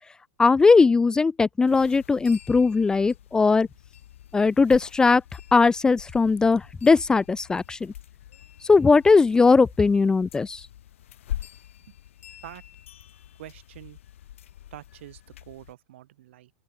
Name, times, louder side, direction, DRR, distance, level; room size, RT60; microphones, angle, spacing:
voice 1, 0.4-3.7 4.3-5.2 5.5-7.9 8.7-10.6, left 4 dB, 10° left, 0.5 m, -19 dB
sound 1, 1.6-15.7, left 12 dB, 80° left, 2.8 m, -44 dB
voice 2, 13.4-14.0 14.7-15.2 15.4-16.5, right 14 dB, 70° right, 3.5 m, -45 dB
open air
supercardioid pair, 135°, 7 cm